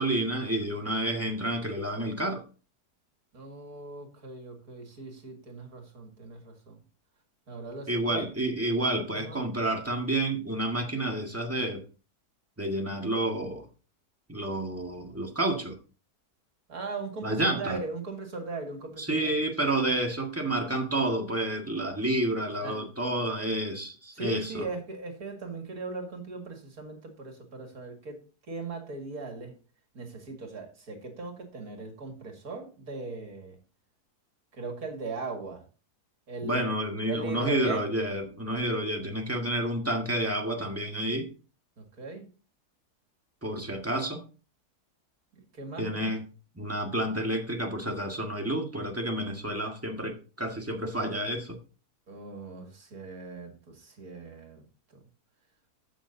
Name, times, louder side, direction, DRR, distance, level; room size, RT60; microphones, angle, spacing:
voice 1, 0.0-2.4 7.9-11.8 12.6-13.6 14.3-15.8 17.2-17.8 19.0-24.7 36.4-41.3 43.4-44.2 45.8-46.2 46.5-51.6, right 1 dB, 10° right, 1 dB, 1.7 m, -29 dB
voice 2, 3.3-6.8 7.5-8.3 9.1-9.4 16.7-19.4 22.6-22.8 24.1-29.6 29.9-33.6 34.5-35.7 36.3-36.7 37.1-37.9 41.8-42.3 45.3-46.1 52.1-54.6 54.9-55.0, right 3 dB, 65° right, 3 dB, 2.6 m, -39 dB
14.5 x 6.4 x 2.7 m, 0.35 s
omnidirectional pair, 1.7 m